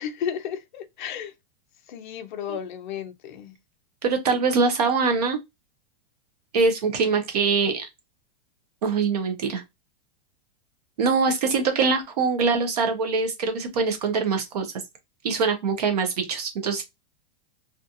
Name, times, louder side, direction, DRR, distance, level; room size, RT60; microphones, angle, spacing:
voice 1, 0.0-1.3 1.9-3.5, left 8 dB, 50° left, 0.5 m, -33 dB
voice 2, 4.0-5.4 6.5-7.9 8.8-9.6 11.0-14.7 15.2-16.8, right 4 dB, 40° right, 0.4 m, -23 dB
2.4 x 2.3 x 2.6 m
supercardioid pair, 180°, 31 cm